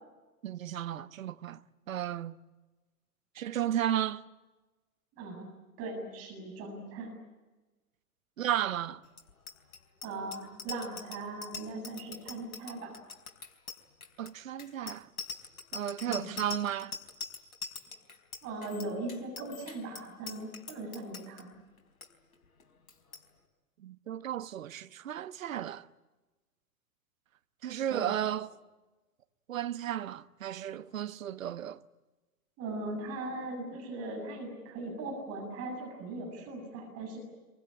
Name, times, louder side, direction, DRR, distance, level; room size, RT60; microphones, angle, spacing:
voice 1, 0.4-1.6 1.9-2.3 3.4-4.2 8.4-9.0 14.2-15.1 15.7-17.0 23.8-25.9 27.6-28.5 29.5-31.8, right 11 dB, 60° right, 1.1 m, -34 dB
voice 2, 5.1-5.5 5.8-7.2 10.0-12.9 16.1-16.3 18.4-21.5 27.9-28.1 32.6-37.2, right 2 dB, 30° right, 7.5 m, -39 dB
Bicycle bell, 9.1-21.4 21.8-22.1 22.3-22.6 22.9-23.2, left 5 dB, 65° left, 4.3 m, -43 dB
26.0 x 23.5 x 8.7 m
figure-of-eight pair, 100°, 45 cm